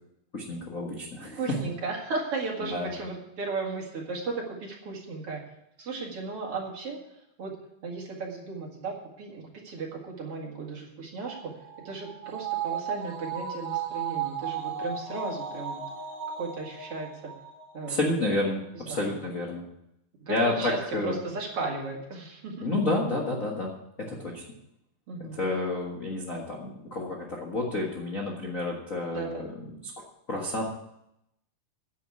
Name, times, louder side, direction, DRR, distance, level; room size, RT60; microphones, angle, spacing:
voice 1, 0.3-1.6 2.6-2.9 17.9-19.6 20.3-21.1 22.6-23.7 24.0-24.4 25.3-29.5 29.8-29.9 30.3-30.6, left 2 dB, 55° left, -1 dB, 0.9 m, -30 dB
voice 2, 1.4-5.4 5.8-7.0 7.4-7.5 7.8-11.5 11.8-15.8 16.4-17.3 17.7-18.0 18.9-19.2 20.2-22.7 25.1-25.4 29.1-29.5, right 3 dB, 45° right, -1 dB, 2.6 m, -35 dB
sound 1, 11.3-17.9 18.3-18.4, right 8 dB, 65° right, 3.6 m, -35 dB
10.5 x 7.6 x 8.5 m, 0.82 s
omnidirectional pair, 4.2 m